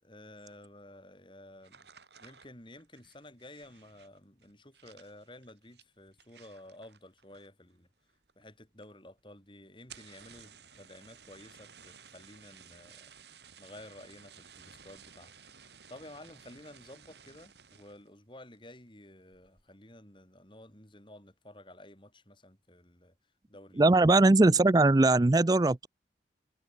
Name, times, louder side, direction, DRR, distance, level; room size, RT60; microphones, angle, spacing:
voice 1, 0.0-1.9 2.2-7.9 8.4-13.1 13.6-23.2 23.5-23.9, left 1 dB, 30° left, 7.6 m, -52 dB
sound 1, 1.6-7.7 8.0-8.5 8.8-8.9 9.2-9.3 9.7-18.1 18.5-18.9 19.3-19.7, right 7 dB, 75° right, 6.3 m, -56 dB
voice 2, 23.8-25.9, right 2 dB, 20° right, 0.4 m, -21 dB
head